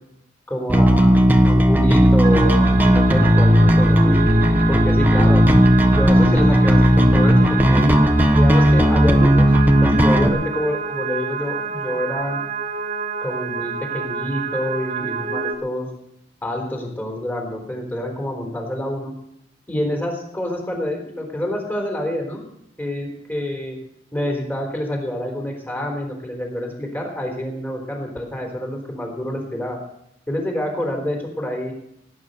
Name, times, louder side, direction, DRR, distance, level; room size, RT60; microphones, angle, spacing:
voice 1, 0.5-4.2 4.7-5.4 5.9-7.9 8.3-9.5 9.8-12.4 13.2-15.9 16.4-19.1 19.7-22.5 22.8-23.8 24.1-29.8 30.3-31.7, left 1 dB, 10° left, 1 dB, 3.8 m, -27 dB
Bass guitar, 0.7-10.3, equal, 10° right, 1.2 m, -15 dB
sound 1, 2.2-15.6, right 5 dB, 50° right, 2.4 m, -28 dB
17.5 x 9.4 x 6.7 m, 0.77 s
head